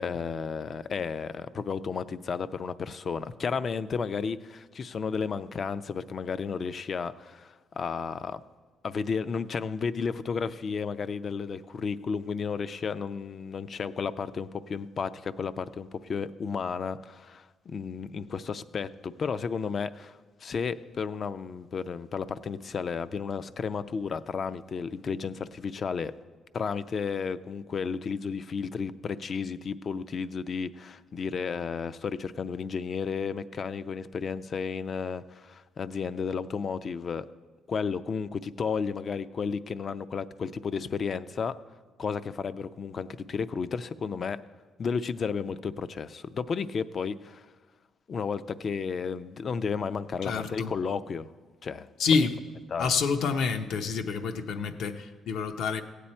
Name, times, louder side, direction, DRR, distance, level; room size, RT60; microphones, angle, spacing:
voice 1, 0.0-8.4 8.8-26.1 26.5-37.3 37.7-41.5 42.0-44.4 44.8-47.5 48.1-51.3 51.6-51.9 52.7-52.9, left 5 dB, 50° left, 14 dB, 0.5 m, -33 dB
voice 2, 50.2-50.7 52.0-52.4 52.8-55.8, left 5 dB, 75° left, 6 dB, 0.8 m, -28 dB
16.0 x 8.4 x 4.3 m, 1.4 s
cardioid pair, 90°, 0 cm